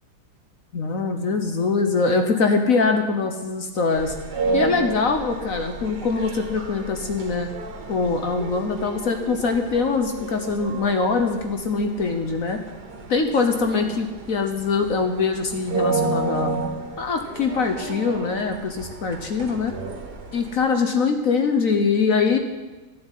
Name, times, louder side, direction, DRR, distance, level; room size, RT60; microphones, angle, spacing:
voice 1, 0.7-4.1 4.5-7.5 7.9-12.6 13.1-16.5 17.0-19.7 20.3-22.4, left 4 dB, 60° left, 5 dB, 1.4 m, -23 dB
sound 1, 3.9-20.6, right 3 dB, 80° right, 2.1 m, -32 dB
12.5 x 7.9 x 9.2 m, 1.2 s
omnidirectional pair, 1.7 m